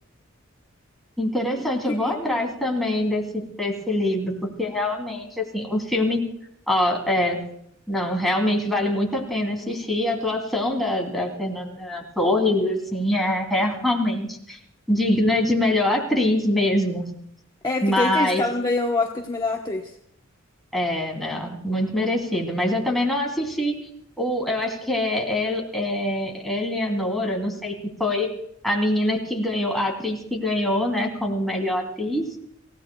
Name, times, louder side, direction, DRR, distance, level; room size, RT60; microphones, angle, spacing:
voice 1, 1.2-4.3 4.6-6.2 6.7-7.4 7.9-14.6 14.9-17.0 17.8-18.4 20.7-23.7 24.2-27.7 28.0-28.3 28.6-32.2, left 1 dB, ahead, -1 dB, 3.0 m, -24 dB
voice 2, 2.0-2.4 17.6-19.8, left 3 dB, 20° left, 0 dB, 1.1 m, -25 dB
27.5 x 16.5 x 2.3 m, 0.70 s
head